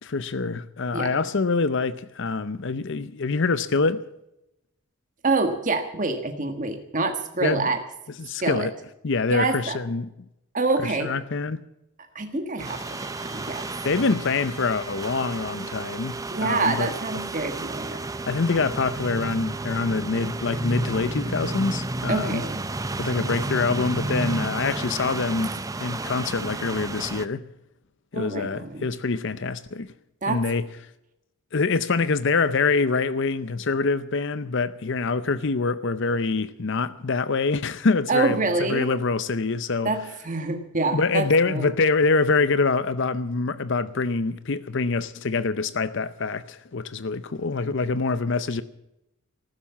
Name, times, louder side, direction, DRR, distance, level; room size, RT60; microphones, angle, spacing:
voice 1, 0.0-4.0 7.4-7.7 8.2-8.7 9.0-10.1 10.8-11.6 13.8-16.9 18.3-22.4 23.0-25.5 25.8-27.5 28.1-29.9 30.3-30.6 31.5-38.4 38.7-39.9 40.9-48.6, left 4 dB, 55° left, 0.6 m, -25 dB
voice 2, 5.2-7.8 8.4-8.7 9.3-9.8 10.5-11.1 12.1-13.7 16.3-18.1 22.1-22.6 28.1-28.9 30.2-30.4 38.1-38.9 39.8-41.7, right 3 dB, 35° right, 1.6 m, -26 dB
sound 1, 12.6-24.1, right 4 dB, 25° left, 5.2 m, -43 dB
sound 2, 12.6-27.3, right 2 dB, 15° right, 0.6 m, -32 dB
14.5 x 13.0 x 7.2 m
head